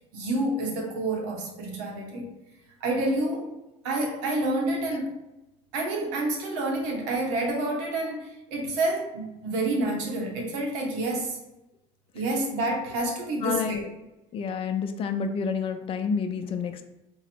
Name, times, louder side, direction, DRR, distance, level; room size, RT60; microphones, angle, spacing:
voice 1, 0.1-2.3 2.8-3.5 3.8-5.2 5.7-11.4 12.1-13.8, right 2 dB, 80° right, 1 dB, 1.0 m, -28 dB
voice 2, 13.4-13.9 14.3-16.8, left 6 dB, 40° left, 7 dB, 0.5 m, -29 dB
3.8 x 2.1 x 4.3 m, 0.95 s
supercardioid pair, 115°, 15 cm